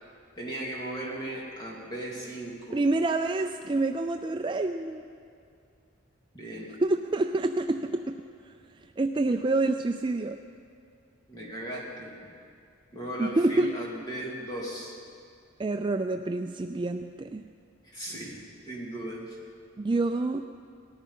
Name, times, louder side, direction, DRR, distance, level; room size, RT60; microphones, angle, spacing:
voice 1, 0.4-2.8 6.3-6.7 11.3-12.1 12.9-14.9 17.9-19.4, right 1 dB, 20° left, -3 dB, 2.6 m, -37 dB
voice 2, 2.7-5.0 6.8-8.5 9.0-10.4 13.2-13.7 15.6-17.4 19.8-20.5, right 2 dB, 25° right, 6 dB, 0.3 m, -27 dB
19.0 x 13.5 x 5.6 m, 2.4 s
head